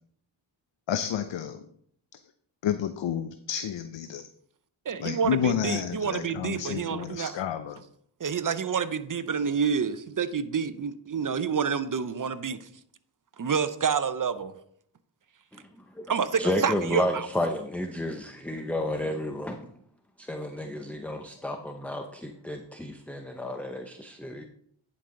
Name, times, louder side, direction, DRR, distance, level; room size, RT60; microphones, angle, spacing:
voice 1, 0.9-1.6 2.6-4.2 5.0-7.8, left 9 dB, 65° left, 10 dB, 0.6 m, -30 dB
voice 2, 4.9-7.4 8.2-12.6 13.4-14.5 16.1-17.2, right 6 dB, 40° right, 13 dB, 0.7 m, -28 dB
voice 3, 15.5-16.0 16.4-19.7 20.2-24.5, left 1 dB, 5° left, 5 dB, 0.7 m, -32 dB
10.0 x 5.5 x 3.8 m, 0.67 s
cardioid pair, 55°, 48 cm